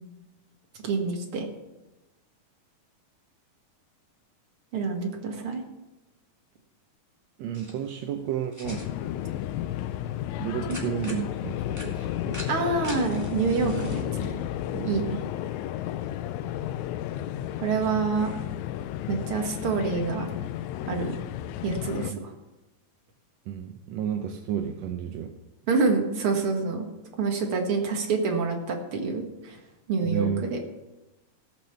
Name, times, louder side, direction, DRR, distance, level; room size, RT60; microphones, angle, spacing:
voice 1, 0.8-1.5 4.7-5.6 10.7-10.8 12.5-14.4 14.8-15.2 17.6-18.3 19.1-20.3 20.9-21.1 21.6-22.3 25.7-26.9 27.2-29.6 29.9-30.6, right 4 dB, 45° right, 2 dB, 2.3 m, -27 dB
voice 2, 7.4-8.8 10.4-12.4 14.7-15.1 22.1-22.2 23.5-25.3 30.0-30.5, right 9 dB, 75° right, 5 dB, 1.6 m, -32 dB
sound 1, 7.5-14.0, equal, 5° right, 1.7 m, -46 dB
sound 2, 8.6-22.1, left 12 dB, 80° left, 1.7 m, -32 dB
17.5 x 6.1 x 6.8 m, 1.0 s
omnidirectional pair, 3.7 m